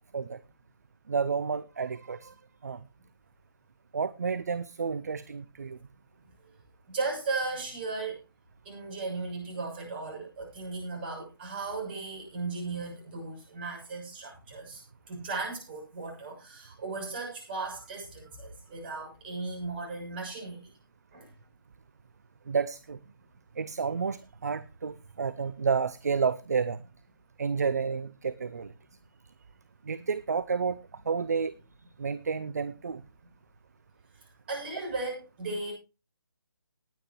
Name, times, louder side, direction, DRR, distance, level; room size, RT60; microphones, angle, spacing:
voice 1, 1.1-2.3 2.6-2.8 3.9-5.8 22.5-23.0 23.6-26.8 27.4-28.7 29.9-30.8 31.1-31.5 32.0-33.0, right 5 dB, 45° right, 17 dB, 0.6 m, -30 dB
voice 2, 6.9-8.2 8.6-14.8 15.1-20.7 21.1-21.3 34.2-35.7, right 3 dB, 25° right, 0 dB, 6.8 m, -36 dB
19.0 x 8.8 x 3.0 m, 0.31 s
figure-of-eight pair, 150°, 12 cm